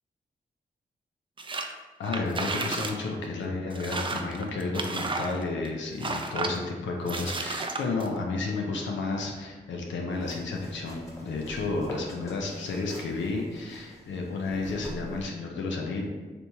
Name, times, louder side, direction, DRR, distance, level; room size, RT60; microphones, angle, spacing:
sound 1, 1.4-1.7 2.1-3.0 3.2-3.3 3.7-5.7 6.0-6.6 7.1-8.1, right 3 dB, 25° right, 0.4 m, -32 dB
voice 1, 2.0-16.1, left 3 dB, 80° left, 0 dB, 0.5 m, -32 dB
sound 2, 10.1-15.3, equal, 15° left, 1.1 m, -45 dB
3.3 x 2.9 x 2.7 m, 1.3 s
supercardioid pair, 40°, 19 cm